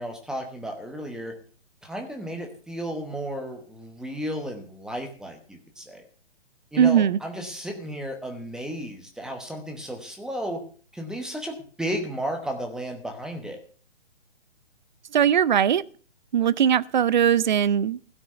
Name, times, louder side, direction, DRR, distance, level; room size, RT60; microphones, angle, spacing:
voice 1, 0.0-1.3 1.8-6.0 6.7-10.6 10.9-13.6, equal, ahead, 1.0 m, -33 dB
voice 2, 6.8-7.2 15.1-15.8 16.3-18.1, right 9 dB, 40° right, 0.6 m, -20 dB
16.5 x 6.1 x 8.0 m
hypercardioid pair, 155°, 36 cm